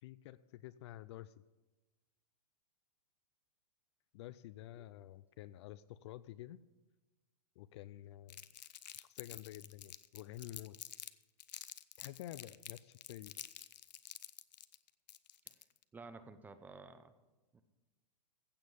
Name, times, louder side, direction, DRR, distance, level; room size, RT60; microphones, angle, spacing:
voice 1, 0.0-1.3 4.1-6.6 7.6-8.4 8.9-10.8 12.0-13.3, left 14 dB, 40° left, 16 dB, 0.4 m, -50 dB
Crumpling crinkling, 8.3-11.1 11.4-15.8, left 10 dB, 90° left, 0.7 m, -50 dB
voice 2, 15.9-17.1 17.5-17.6, right 3 dB, 10° right, 11 dB, 0.5 m, -52 dB
15.5 x 7.7 x 5.2 m, 1.1 s
hypercardioid pair, 150°, 21 cm